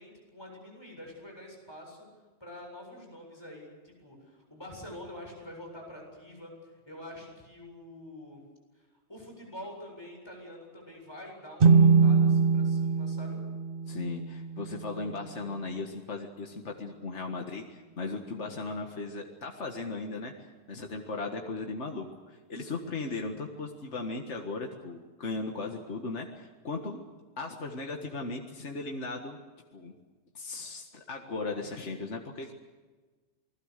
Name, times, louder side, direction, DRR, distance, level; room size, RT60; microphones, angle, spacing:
voice 1, 0.0-2.1 2.4-8.4 9.1-13.4, left 1 dB, 20° left, 0 dB, 7.7 m, -46 dB
sound 1, 11.6-15.2, right 5 dB, 50° right, 1.1 m, -23 dB
voice 2, 13.9-27.1 27.4-29.4 29.7-29.9 30.3-32.5, left 3 dB, 70° left, 2 dB, 2.0 m, -37 dB
28.5 x 20.5 x 6.7 m, 1.3 s
omnidirectional pair, 1.2 m